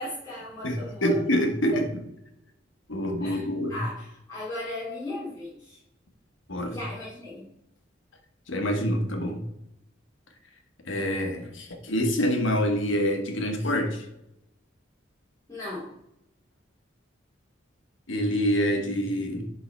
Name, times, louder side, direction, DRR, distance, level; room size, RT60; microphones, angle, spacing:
voice 1, 0.0-1.1 3.2-3.4 3.7-5.8 6.6-7.5 15.5-15.9, left 1 dB, 15° left, -9 dB, 2.5 m, -37 dB
voice 2, 0.6-1.9 2.9-3.8 6.5-6.8 8.5-9.4 10.8-14.0 18.1-19.4, equal, 75° left, 4 dB, 1.4 m, -26 dB
11.0 x 3.9 x 4.3 m, 0.83 s
head